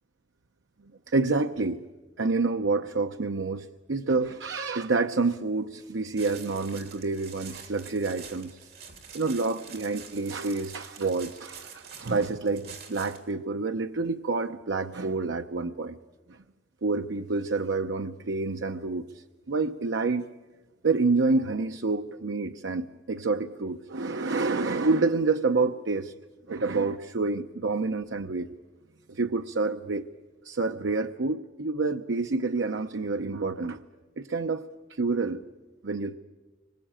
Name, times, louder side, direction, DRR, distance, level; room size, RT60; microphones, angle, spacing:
voice 1, 1.1-1.8 2.2-8.6 9.1-16.0 16.3-16.4 16.8-20.2 20.8-26.1 26.5-28.5 29.1-30.0 30.4-33.8 34.2-34.6 34.9-35.4 35.8-36.1, right 3 dB, 85° right, 7 dB, 0.7 m, -28 dB
sound 1, 6.2-13.3, right 6 dB, 55° right, 3.0 m, -46 dB
25.0 x 21.5 x 8.9 m, 1.2 s
head